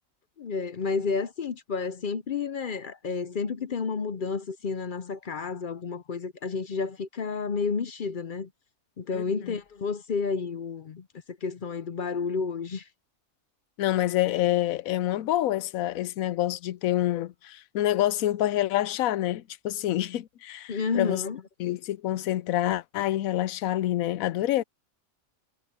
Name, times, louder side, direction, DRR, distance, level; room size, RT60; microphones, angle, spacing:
voice 1, 0.4-8.5 9.0-12.9 20.7-21.4, left 5 dB, 50° left, 0.6 m, -31 dB
voice 2, 13.8-21.2 21.6-24.6, left 14 dB, 75° left, 1.0 m, -27 dB
omnidirectional pair, 1.5 m